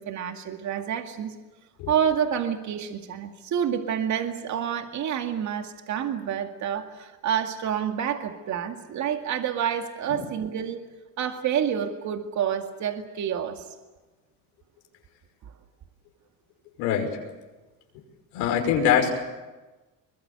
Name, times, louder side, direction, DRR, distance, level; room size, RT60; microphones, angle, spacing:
voice 1, 0.0-1.3 1.9-10.8 11.2-13.7 15.4-15.5, right 8 dB, 55° right, 5 dB, 2.2 m, -28 dB
voice 2, 16.8-17.1 18.3-19.1, left 8 dB, 90° left, 3 dB, 5.6 m, -23 dB
23.5 x 21.5 x 8.1 m, 1.2 s
cardioid pair, 105°, 35 cm